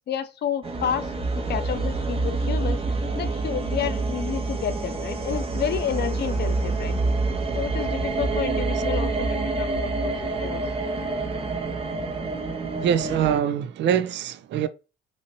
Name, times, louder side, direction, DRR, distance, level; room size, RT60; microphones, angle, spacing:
voice 1, 0.1-1.1 1.5-7.0 7.5-10.6, left 8 dB, 55° left, 0.5 m, -30 dB
sound 1, 0.6-13.4, right 3 dB, 30° right, 0.7 m, -27 dB
voice 2, 12.8-14.7, right 9 dB, 65° right, 0.4 m, -23 dB
2.7 x 2.6 x 2.9 m
cardioid pair, 90°, 20 cm